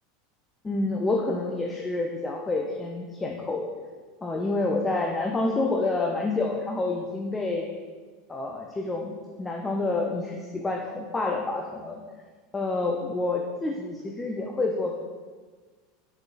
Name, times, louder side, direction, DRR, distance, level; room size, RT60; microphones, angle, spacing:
voice 1, 0.6-3.7 4.2-7.7 8.3-9.1 9.4-12.0 12.5-14.9, left 2 dB, 20° left, 1 dB, 0.4 m, -28 dB
5.0 x 3.8 x 2.4 m, 1.5 s
hypercardioid pair, 85°, 0 cm